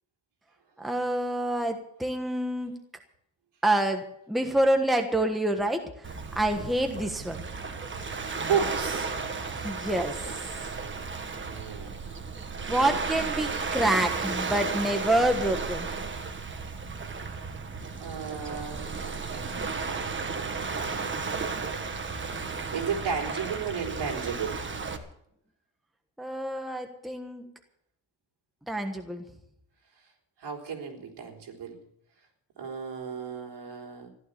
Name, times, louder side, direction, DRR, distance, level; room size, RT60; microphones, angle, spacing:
voice 1, 0.8-2.8 3.6-6.1 6.3-7.7 9.5-10.2 12.7-15.9 26.2-27.5 28.7-29.2, right 1 dB, ahead, 4 dB, 1.3 m, -27 dB
Waves surf, 6.0-25.0, right 4 dB, 25° right, 1.5 m, -34 dB
voice 2, 8.3-9.1 11.4-11.9 17.3-17.4 18.0-20.1 20.6-21.1 21.4-21.9 22.7-24.6 30.4-31.8 32.6-34.1, right 6 dB, 65° right, 2 dB, 3.8 m, -34 dB
15.0 x 11.5 x 6.8 m, 0.71 s
cardioid pair, 145°, 43 cm